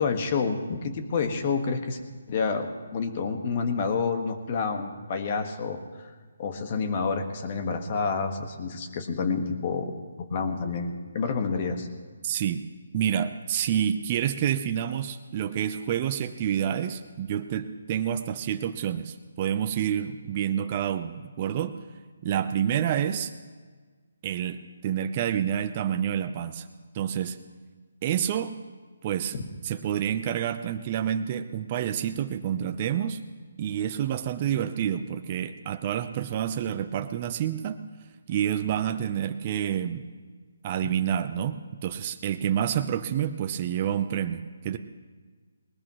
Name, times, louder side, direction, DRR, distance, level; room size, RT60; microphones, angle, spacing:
voice 1, 0.0-2.0 2.3-6.1 6.4-11.9, left 5 dB, 40° left, 6 dB, 1.6 m, -29 dB
voice 2, 12.2-12.7 12.9-21.8 22.2-23.3 24.2-26.7 26.9-27.4 28.0-28.5 29.0-29.3 29.6-33.2 33.6-37.8 38.3-40.1 40.6-44.8, right 9 dB, 35° right, 8 dB, 0.7 m, -28 dB
19.5 x 19.5 x 3.1 m, 1.5 s
figure-of-eight pair, 150°, 0 cm